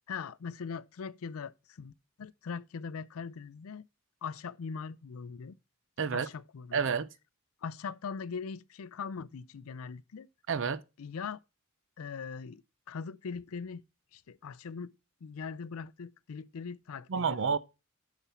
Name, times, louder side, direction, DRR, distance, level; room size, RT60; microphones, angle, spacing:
voice 1, 0.1-1.9 2.2-3.9 4.2-5.6 6.1-7.0 7.6-10.3 11.0-11.4 12.0-12.6 12.9-13.8 14.1-14.9 15.2-17.4, left 5 dB, 80° left, 0.5 m, -41 dB
voice 2, 6.0-6.3 6.7-7.1 10.5-10.8 17.1-17.6, right 6 dB, 60° right, 0.6 m, -29 dB
7.0 x 6.0 x 5.6 m
head